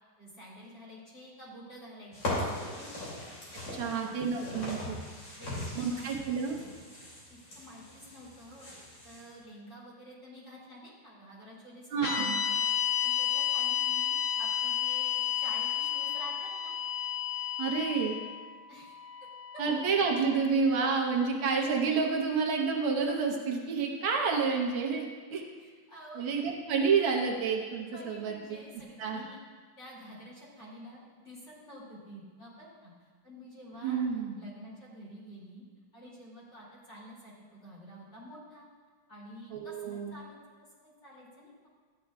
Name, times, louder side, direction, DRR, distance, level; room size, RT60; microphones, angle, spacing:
voice 1, 0.2-3.1 3.8-4.1 5.4-6.1 7.3-8.7 9.0-12.7 13.0-16.8 18.7-19.0 25.6-26.2 27.9-29.4 29.8-34.0 34.4-35.6 35.9-38.7 39.1-40.4 40.8-41.7, equal, 30° left, -8 dB, 3.0 m, -49 dB
sound 1, 2.1-9.3, left 1 dB, 60° left, 3.3 m, -39 dB
voice 2, 3.7-5.0 5.8-6.6 11.9-12.4 17.6-18.2 19.6-25.4 26.2-28.6 29.0-29.2 33.8-34.4 39.5-40.1, right 5 dB, 80° right, 0 dB, 1.7 m, -29 dB
sound 2, 12.0-20.3, left 10 dB, 90° left, 1.9 m, -32 dB
13.0 x 9.1 x 2.3 m, 1.5 s
omnidirectional pair, 2.2 m